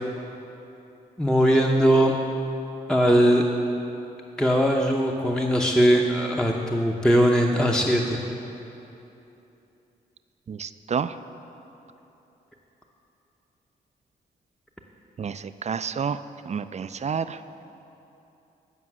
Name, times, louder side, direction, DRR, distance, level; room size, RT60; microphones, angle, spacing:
voice 1, 1.2-2.1 2.9-3.4 4.4-8.2, equal, 5° left, 0 dB, 0.7 m, -20 dB
voice 2, 10.5-11.2 15.2-17.4, right 6 dB, 35° right, 13 dB, 0.3 m, -30 dB
9.6 x 5.3 x 6.1 m, 2.9 s
hypercardioid pair, 40°, 20 cm